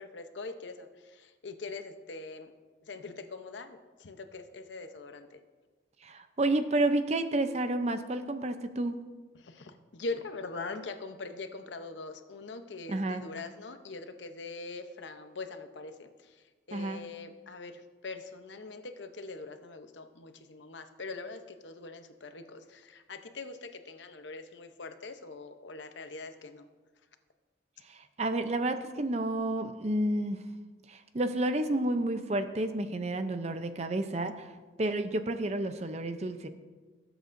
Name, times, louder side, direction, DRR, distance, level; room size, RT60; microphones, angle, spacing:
voice 1, 0.0-2.5 2.9-5.3 9.4-16.1 16.7-17.7 18.0-26.7, left 3 dB, 80° left, 8 dB, 0.8 m, -42 dB
voice 2, 6.0-9.0 12.9-13.2 16.7-17.0 27.9-30.4 30.9-34.5 34.8-36.5, right 1 dB, 35° right, 9 dB, 0.6 m, -30 dB
19.0 x 7.9 x 2.6 m, 1.4 s
head